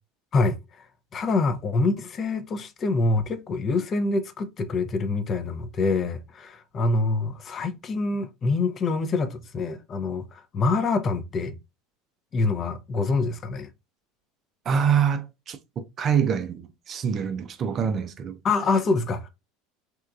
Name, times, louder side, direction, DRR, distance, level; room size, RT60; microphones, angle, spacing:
voice 1, 0.3-0.9 1.1-11.6 12.3-13.7 18.4-19.3, left 3 dB, 35° left, 0.5 m, -25 dB
voice 2, 14.7-18.4, right 7 dB, 40° right, 0.4 m, -25 dB
2.9 x 2.3 x 2.3 m
hypercardioid pair, 75°, 0 cm